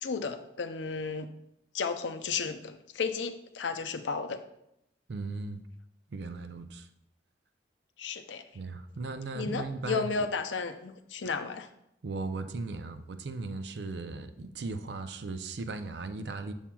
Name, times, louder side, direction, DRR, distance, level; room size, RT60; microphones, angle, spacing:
voice 1, 0.0-1.3 1.7-4.4 8.0-8.4 9.4-11.7, left 5 dB, 90° left, 8 dB, 0.6 m, -33 dB
voice 2, 5.1-5.6 6.1-6.9 8.5-10.3 12.0-16.5, right 3 dB, 70° right, 8 dB, 0.5 m, -37 dB
7.2 x 7.1 x 2.3 m, 0.80 s
head